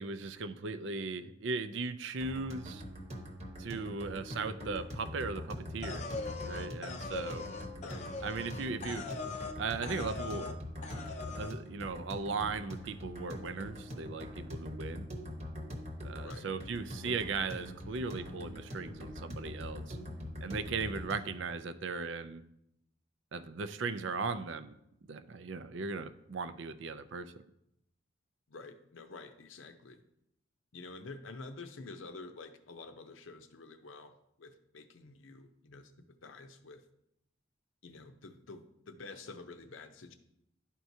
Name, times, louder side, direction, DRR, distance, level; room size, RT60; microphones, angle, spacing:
voice 1, 0.0-2.8 3.6-6.0 6.4-7.4 8.2-9.0 9.6-15.1 16.0-20.0 20.4-22.4 23.3-24.8 25.1-27.3, right 4 dB, 70° right, 11 dB, 0.5 m, -38 dB
sound 1, 2.2-21.4, left 1 dB, 35° right, 1.0 m, -43 dB
Digital Data Whoosh, 5.8-9.6 9.8-10.6 10.8-11.5, left 4 dB, 35° left, 0.5 m, -41 dB
voice 2, 28.5-30.0 30.7-34.1 34.4-35.9 36.2-36.8 37.8-40.1, left 3 dB, 80° left, 8 dB, 0.7 m, -49 dB
11.5 x 4.6 x 2.7 m, 0.79 s
head